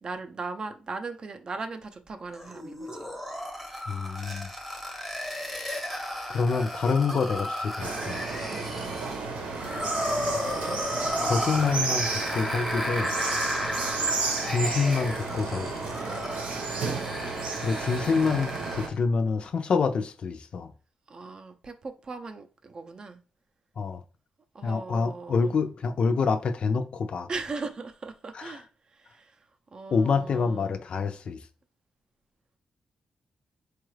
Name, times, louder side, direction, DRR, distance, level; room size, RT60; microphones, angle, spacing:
voice 1, 0.0-3.1 8.5-9.0 21.1-23.2 24.5-25.6 27.3-29.4 29.7-30.8, right 3 dB, 35° right, 0.5 m, -39 dB
Vocal Strain - Unprocessed, 2.3-19.0, left 1 dB, ahead, 0.8 m, -34 dB
voice 2, 3.9-4.5 6.3-8.2 11.2-13.1 14.4-15.9 17.6-20.7 23.8-24.0 24.6-27.3 28.4-28.5 29.9-31.4, left 5 dB, 45° left, 0.4 m, -27 dB
sound 1, 7.8-18.9, right 4 dB, 80° right, 0.9 m, -32 dB
4.6 x 2.4 x 3.1 m
wide cardioid pair, 165°, 2 cm